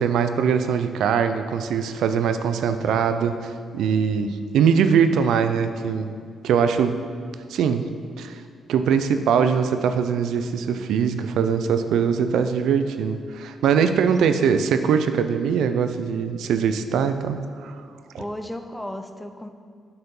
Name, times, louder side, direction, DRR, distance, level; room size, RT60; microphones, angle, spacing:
voice 1, 0.0-4.3 4.5-6.1 6.4-7.0 7.5-7.9 8.2-8.4 8.7-17.8, right 7 dB, 85° right, 9 dB, 0.4 m, -22 dB
voice 2, 4.2-4.6 14.3-14.5 18.1-19.5, left 1 dB, 10° left, 7 dB, 0.6 m, -35 dB
6.8 x 6.7 x 5.4 m, 2.1 s
cardioid pair, 80°, 0 cm